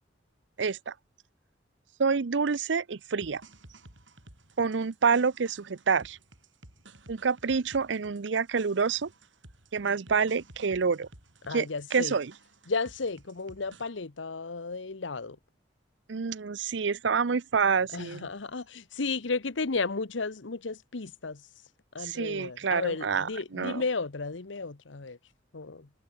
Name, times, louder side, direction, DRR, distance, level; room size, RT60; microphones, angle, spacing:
voice 1, 0.6-0.9 2.0-3.4 4.6-6.2 7.1-9.1 9.7-11.1 11.5-12.3 16.1-18.3 22.0-23.8, right 5 dB, 70° right, 0.6 m, -27 dB
sound 1, 3.2-13.8, right 2 dB, 90° right, 6.8 m, -54 dB
voice 2, 11.5-12.2 12.7-15.4 17.9-21.4 21.9-25.2 25.5-25.9, left 4 dB, 85° left, 1.1 m, -33 dB
head